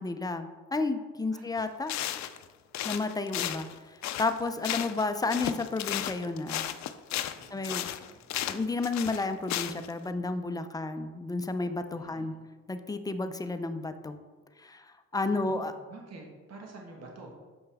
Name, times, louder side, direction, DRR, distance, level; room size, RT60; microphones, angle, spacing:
voice 1, 0.0-1.9 2.8-3.7 4.2-6.6 7.5-7.8 8.5-12.3 12.7-14.2 14.6-14.8 15.1-15.7, left 3 dB, 15° left, 8 dB, 0.5 m, -31 dB
sound 1, 1.6-1.7 1.9-2.4 2.7-5.0 5.3-9.9, left 12 dB, 65° left, 0.5 m, -34 dB
voice 2, 7.4-8.3 11.9-12.4 15.2-16.2 16.5-17.3, right 3 dB, 55° right, 0 dB, 1.5 m, -47 dB
7.0 x 5.4 x 3.5 m, 1.3 s
cardioid pair, 90°, 30 cm